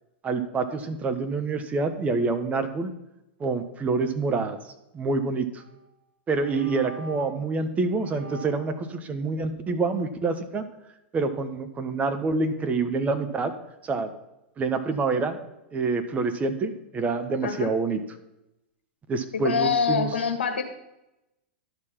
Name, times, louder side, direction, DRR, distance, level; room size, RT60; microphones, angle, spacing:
voice 1, 0.2-2.9 3.4-5.6 6.3-10.6 11.1-13.5 13.8-14.1 14.6-15.4 15.7-18.0 19.1-20.1, right 3 dB, 25° right, 8 dB, 1.1 m, -27 dB
sound 1, 5.6-5.9 6.3-7.4 8.0-8.8, right 2 dB, 40° right, 2.8 m, -43 dB
voice 2, 17.4-17.7 19.4-20.6, left 6 dB, 80° left, 5 dB, 1.5 m, -25 dB
11.5 x 4.8 x 5.8 m, 0.90 s
hypercardioid pair, 105°, 6 cm